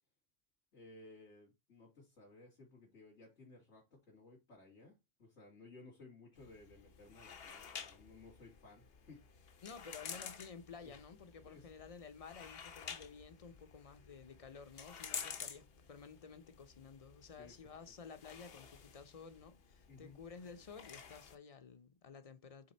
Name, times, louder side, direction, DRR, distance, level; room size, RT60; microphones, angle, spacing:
voice 1, 0.7-9.2 9.9-10.1 10.8-10.9 11.5-11.7 17.4-17.6 17.9-18.0 19.9-20.2, left 3 dB, 85° left, 2.7 m, -58 dB
sound 1, 6.3-21.3, left 7 dB, 60° left, 1.0 m, -51 dB
voice 2, 9.6-22.7, left 5 dB, 40° left, 0.7 m, -53 dB
8.5 x 3.6 x 4.3 m
omnidirectional pair, 1.2 m